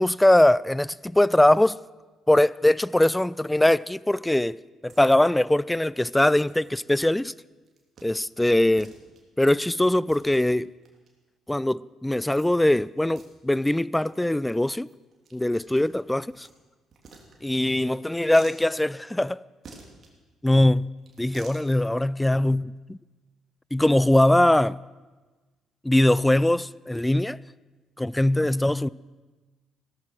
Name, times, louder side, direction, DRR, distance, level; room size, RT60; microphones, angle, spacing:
voice 1, 0.0-1.8 2.3-7.3 8.0-8.9 9.4-10.7 11.5-14.9 15.3-16.5 17.4-19.4 20.4-20.9 21.2-23.0 23.7-24.8 25.8-27.4 28.0-28.9, left 1 dB, 10° left, 0.4 m, -21 dB
sound 1, 4.9-5.0 5.3-5.4 5.7-5.8 6.4-6.7 7.2-7.4 7.6-8.1 8.4-8.5 8.8-9.2 9.8-11.1 12.4-12.8 13.0-13.3 13.6-13.7 14.0-14.2 14.4-14.5 14.8-16.5 16.9-17.7 18.1-18.6 19.6-20.1 21.0-21.6, right 4 dB, 50° right, 3.2 m, -50 dB
16.5 x 13.5 x 6.2 m
hypercardioid pair, 45°, 0 cm